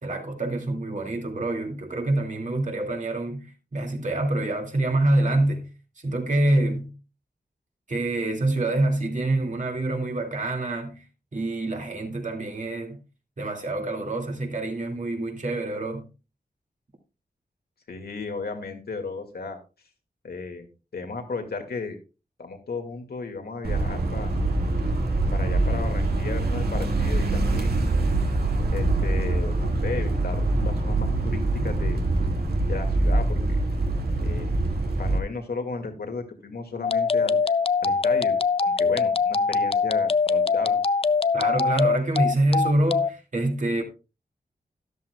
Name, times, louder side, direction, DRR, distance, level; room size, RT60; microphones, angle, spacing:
voice 1, 0.0-5.7 6.0-6.9 7.9-11.0 11.3-13.0 13.4-16.1 41.3-43.8, right 2 dB, 50° right, 2.4 m, -26 dB
voice 2, 17.9-19.6 20.2-20.7 20.9-22.0 22.4-24.3 25.3-27.9 28.7-32.0 32.7-33.4 34.2-34.5 35.0-37.5 37.8-38.3 38.6-40.8, left 4 dB, 75° left, 2.2 m, -35 dB
sound 1, 23.6-35.2, right 2 dB, 75° right, 2.0 m, -24 dB
sound 2, 36.8-43.1, left 5 dB, 35° left, 0.4 m, -22 dB
13.0 x 11.0 x 2.4 m
wide cardioid pair, 80°, 16 cm